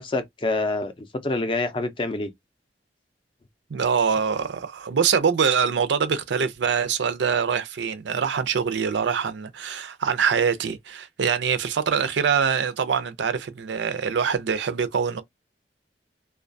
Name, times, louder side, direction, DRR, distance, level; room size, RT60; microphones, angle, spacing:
voice 1, 0.0-2.3, left 2 dB, 30° left, 0.4 m, -27 dB
voice 2, 3.7-15.2, right 6 dB, 85° right, 0.4 m, -24 dB
2.2 x 2.2 x 2.5 m
head